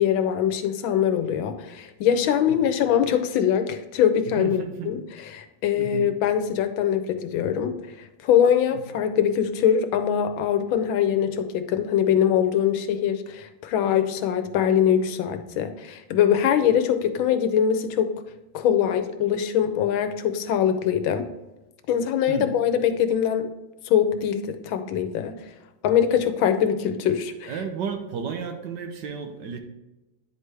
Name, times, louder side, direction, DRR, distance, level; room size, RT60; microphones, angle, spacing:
voice 1, 0.0-5.0 5.3-7.8 8.2-18.1 18.5-21.3 21.9-23.5 23.9-25.3 25.8-27.5, left 9 dB, 85° left, 8 dB, 1.5 m, -22 dB
voice 2, 4.4-4.9 5.8-6.1 8.7-8.8 22.3-22.5 27.5-29.6, right 6 dB, 70° right, 6 dB, 1.3 m, -32 dB
9.5 x 4.7 x 3.3 m, 1.0 s
omnidirectional pair, 2.1 m